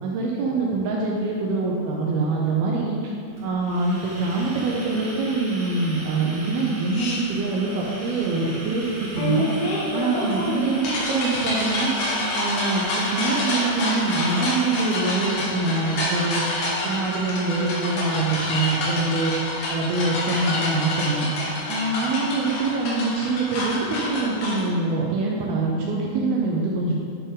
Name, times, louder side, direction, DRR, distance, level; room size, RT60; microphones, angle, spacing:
voice 1, 0.0-3.1 3.4-9.5 9.9-16.4 16.8-19.3 19.7-21.3 21.7-26.9, right 3 dB, 80° right, -3 dB, 2.2 m, -24 dB
sound 1, 3.4-16.8, right 1 dB, 60° right, 1.2 m, -37 dB
sound 2, 6.9-7.2 9.2-24.6, left 2 dB, 70° left, 2.9 m, -28 dB
10.5 x 4.1 x 3.7 m, 2.6 s
omnidirectional pair, 5.0 m